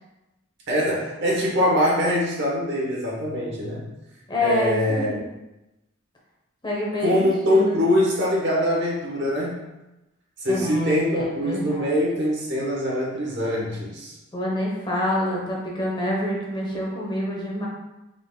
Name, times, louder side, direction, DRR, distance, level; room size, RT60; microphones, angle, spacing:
voice 1, 0.7-3.9 4.4-5.2 7.0-9.6 10.4-14.1, equal, 55° right, -3 dB, 1.2 m, -23 dB
voice 2, 4.3-5.2 6.6-7.8 10.5-11.1 11.4-11.9 14.3-17.7, left 1 dB, 20° left, -3 dB, 0.9 m, -27 dB
3.9 x 3.1 x 3.7 m, 0.98 s
head